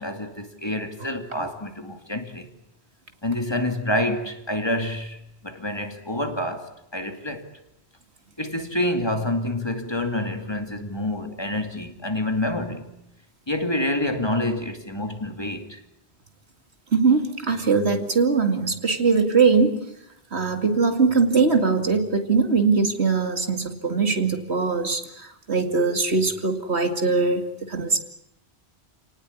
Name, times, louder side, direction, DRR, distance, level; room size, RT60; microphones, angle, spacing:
voice 1, 0.0-2.5 3.2-7.5 8.4-12.9 13.5-15.8, left 1 dB, 25° left, 2.5 m, -27 dB
voice 2, 16.9-19.8 20.3-28.0, right 4 dB, 75° right, 2.6 m, -21 dB
29.0 x 19.0 x 9.7 m
omnidirectional pair, 1.1 m